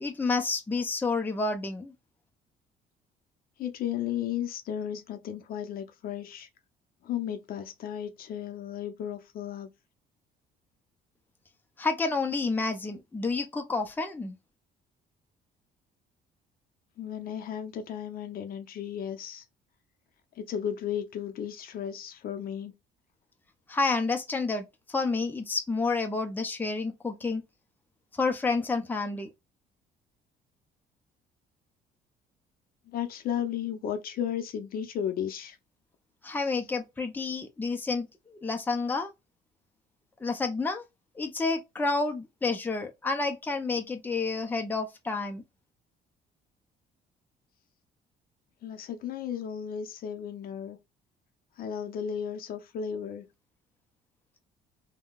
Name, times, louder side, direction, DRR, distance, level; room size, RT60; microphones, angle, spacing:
voice 1, 0.0-1.9 11.8-14.3 23.7-24.6 24.9-27.4 28.2-29.3 36.2-38.1 38.4-39.1 40.2-40.8 41.2-45.4, left 3 dB, 10° left, 0.6 m, -29 dB
voice 2, 3.6-6.5 7.0-9.7 17.0-19.4 20.4-22.7 32.9-35.6 36.3-36.7 48.6-50.8 51.6-53.3, left 9 dB, 60° left, 0.7 m, -34 dB
3.7 x 2.2 x 2.3 m
cardioid pair, 110°, 17 cm